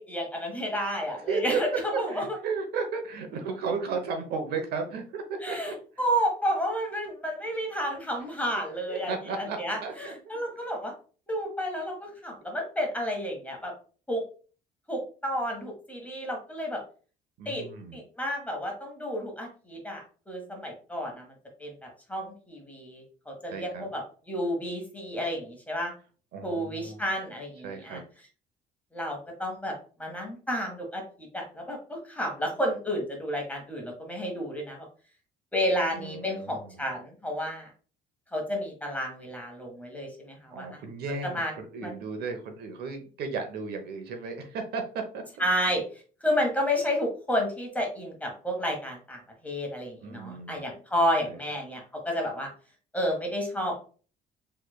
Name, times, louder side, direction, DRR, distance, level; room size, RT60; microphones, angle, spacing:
voice 1, 0.0-1.7 2.0-2.4 5.4-5.7 6.0-10.9 11.3-13.7 14.1-14.2 14.9-16.8 17.4-17.7 17.9-21.3 21.6-24.0 24.3-25.9 26.4-28.0 28.9-29.7 30.0-31.0 31.3-34.9 35.5-37.7 38.3-40.8 41.2-41.5 41.8-41.9 45.4-45.8 46.2-52.5 52.9-53.8, equal, 10° left, 1 dB, 1.4 m, -31 dB
voice 2, 1.3-1.6 1.9-5.7 8.9-10.3 17.4-18.0 23.5-23.9 26.3-27.1 27.6-28.0 35.9-36.9 40.5-45.2 50.0-50.7 51.3-51.4, right 4 dB, 70° right, 5 dB, 0.8 m, -34 dB
4.3 x 3.3 x 2.2 m, 0.38 s
cardioid pair, 110°, 17 cm